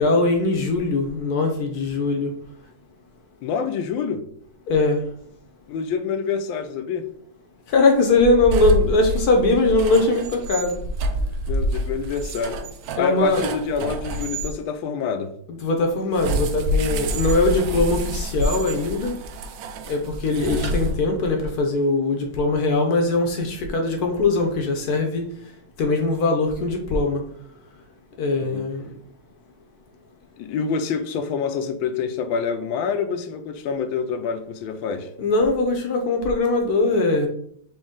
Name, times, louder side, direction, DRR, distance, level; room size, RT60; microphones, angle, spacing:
voice 1, 0.0-2.3 4.7-5.0 7.7-10.8 13.0-13.5 15.5-19.1 19.9-25.2 25.8-27.2 28.2-28.9 35.2-37.3, left 2 dB, 65° left, 1.0 m, -21 dB
voice 2, 3.4-4.2 5.7-7.1 11.5-12.6 13.0-15.3 28.4-28.6 30.4-35.1, left 6 dB, 85° left, 1.3 m, -27 dB
sound 1, 8.1-14.5 16.1-21.4, equal, 80° right, 1.2 m, -27 dB
4.2 x 3.1 x 3.6 m
omnidirectional pair, 2.1 m